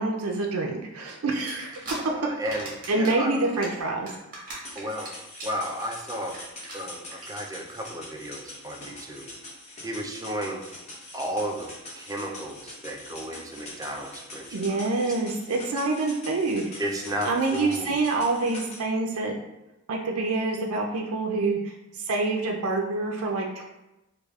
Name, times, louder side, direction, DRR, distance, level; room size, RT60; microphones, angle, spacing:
voice 1, 0.0-1.7 2.2-2.3 2.9-4.1 4.7-4.8 14.5-16.8 17.2-19.3 19.9-23.6, right 3 dB, 80° right, 0 dB, 0.4 m, -26 dB
sound 1, 1.5-2.0 2.3-3.1 3.4-5.1 5.3-5.6 5.9-6.0 6.3-6.4 6.6-6.7 7.1-7.2, right 2 dB, 40° right, 1.2 m, -38 dB
voice 2, 2.1-3.3 4.8-5.1 5.4-6.4 6.7-9.3 9.8-10.6 11.1-11.7 12.0-14.5 16.8-18.0, equal, 15° right, 1 dB, 0.4 m, -33 dB
sound 2, 4.6-18.8, left 1 dB, 30° left, 0.8 m, -43 dB
4.7 x 2.3 x 2.3 m, 0.96 s
head